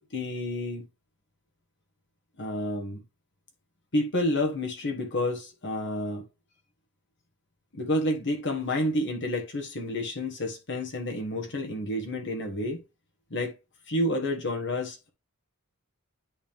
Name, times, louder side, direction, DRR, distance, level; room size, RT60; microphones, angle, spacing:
voice 1, 0.1-0.8 2.4-3.0 3.9-6.2 7.7-12.8 13.3-13.5 13.9-15.1, left 1 dB, 55° left, 1.6 m, -29 dB
9.8 x 3.5 x 3.6 m
head